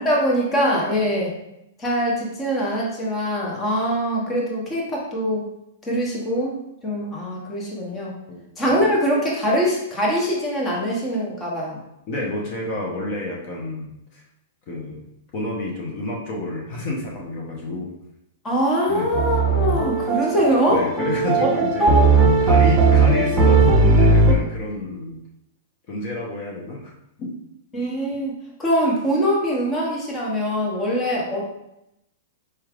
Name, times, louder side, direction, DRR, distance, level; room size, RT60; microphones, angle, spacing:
voice 1, 0.0-1.4 1.8-5.5 5.8-6.5 6.8-8.1 8.6-11.8 18.4-20.8 21.4-21.5 21.8-22.2 23.4-23.5 27.7-31.5, equal, 15° left, -4 dB, 0.9 m, -23 dB
voice 2, 12.1-14.2 14.7-15.1 15.3-17.9 18.9-19.1 20.7-21.9 22.4-25.2 25.9-26.9 27.2-27.3, left 1 dB, 40° left, -2 dB, 0.8 m, -29 dB
sound 1, 19.1-24.3, right 3 dB, 20° right, 0.6 m, -17 dB
4.5 x 3.1 x 2.4 m, 0.83 s
hypercardioid pair, 145°, 0 cm